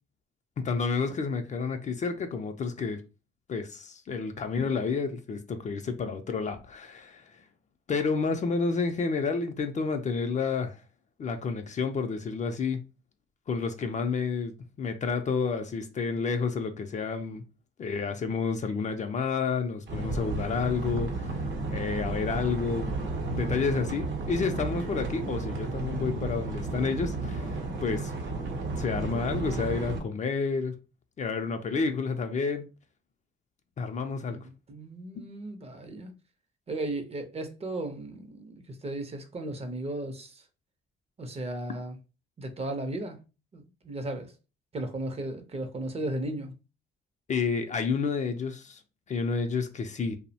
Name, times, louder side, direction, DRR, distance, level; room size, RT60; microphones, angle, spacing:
voice 1, 0.6-3.0 3.5-7.4 7.9-10.8 11.2-12.8 13.5-17.4 17.8-21.4 21.7-22.9 23.3-28.1 28.8-30.8 31.2-32.7 33.8-34.4 47.3-48.8 49.1-50.2, left 5 dB, 40° left, 0.4 m, -30 dB
sound 1, 19.9-30.0, right 3 dB, 70° right, 0.7 m, -33 dB
voice 2, 34.7-36.2 36.7-40.4 41.2-42.0 42.4-43.2 43.5-44.3 44.7-46.6, right 1 dB, 30° right, 0.5 m, -35 dB
2.6 x 2.0 x 2.7 m
cardioid pair, 90°, 20 cm